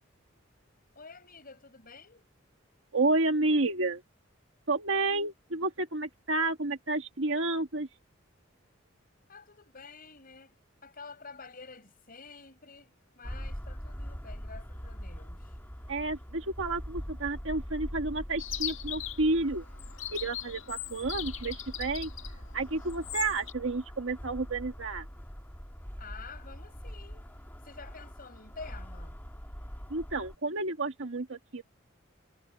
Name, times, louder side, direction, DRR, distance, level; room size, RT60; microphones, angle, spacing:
voice 1, 1.0-2.2 9.3-10.5 10.8-15.6 26.0-27.3 27.6-29.2, left 4 dB, 45° left, 7.6 m, -49 dB
voice 2, 2.9-4.0 4.7-7.9 15.9-19.6 20.1-22.1 22.5-25.0 29.9-31.6, right 2 dB, 70° right, 1.6 m, -30 dB
sound 1, 13.2-30.4, equal, 10° left, 2.4 m, -43 dB
Chirp tweet, 18.4-23.5, left 12 dB, 75° left, 2.1 m, -40 dB
head